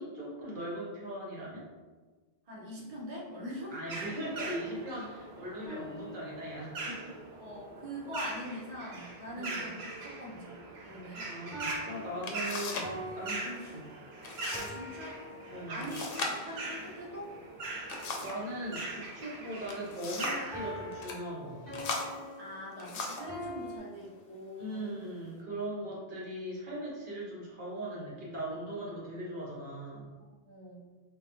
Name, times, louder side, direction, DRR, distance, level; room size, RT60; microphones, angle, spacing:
voice 1, 0.0-1.6 3.7-7.1 9.3-9.7 10.8-13.9 15.5-15.9 17.7-17.9 18.2-21.9 24.6-30.1, right 1 dB, 55° right, -5 dB, 1.0 m, -40 dB
voice 2, 2.5-3.7 7.4-10.5 10.8-11.3 14.5-15.2 15.7-17.3 22.4-24.8 30.2-30.8, equal, 40° right, -6 dB, 0.8 m, -43 dB
sound 1, 3.9-21.1, right 2 dB, 80° right, 0.9 m, -42 dB
sound 2, 5.7-7.0 11.5-16.0 20.5-23.8, equal, 15° right, 1.2 m, -44 dB
sound 3, 12.2-13.0 13.2-13.7 14.2-14.8 15.1-15.2 15.8-18.5 19.4-20.5 20.9-21.2 21.7-23.4 24.1-24.3 24.9-25.4, left 3 dB, 70° left, 0.7 m, -39 dB
3.8 x 2.3 x 2.9 m, 1.4 s
omnidirectional pair, 1.1 m